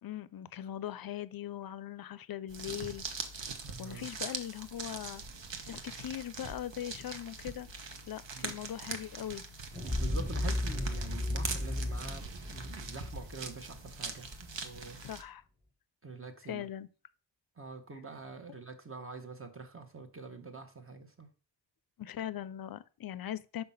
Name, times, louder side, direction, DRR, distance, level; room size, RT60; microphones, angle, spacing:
voice 1, 0.0-3.0 3.8-5.2 5.7-7.7 8.1-9.4 15.0-15.4 16.5-16.9 22.0-23.6, left 11 dB, 50° left, 0.5 m, -40 dB
sound 1, 2.5-15.2, right 4 dB, 70° right, 1.1 m, -42 dB
voice 2, 3.6-4.1 8.3-8.6 9.8-15.0 16.0-16.7 17.6-21.3, right 4 dB, 30° right, 1.0 m, -45 dB
sound 2, 9.7-14.5, left 1 dB, 5° right, 1.3 m, -35 dB
5.7 x 5.7 x 5.4 m
wide cardioid pair, 150°, 45 cm